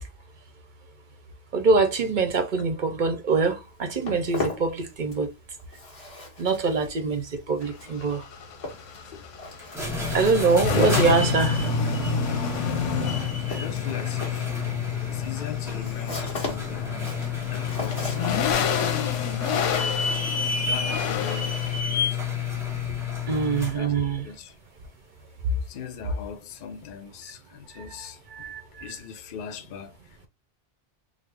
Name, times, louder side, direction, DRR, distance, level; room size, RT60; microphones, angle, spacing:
voice 1, 1.5-5.3 6.4-8.2 10.1-11.6 23.3-24.3 28.4-28.6, right 4 dB, 50° right, 0.7 m, -24 dB
Walk footsteps, 3.6-5.3 5.6-21.0, left 2 dB, 30° left, 1.3 m, -39 dB
sound 1, 7.6-21.8, left 5 dB, 85° left, 1.0 m, -30 dB
sound 2, 9.6-23.8, left 6 dB, ahead, 1.0 m, -30 dB
voice 2, 12.4-12.9 13.5-14.5 15.1-17.0 17.5-18.2 19.5-22.4 23.7-24.5 25.6-28.2 28.8-30.0, left 7 dB, 55° left, 0.6 m, -40 dB
3.6 x 2.0 x 3.3 m
omnidirectional pair, 1.2 m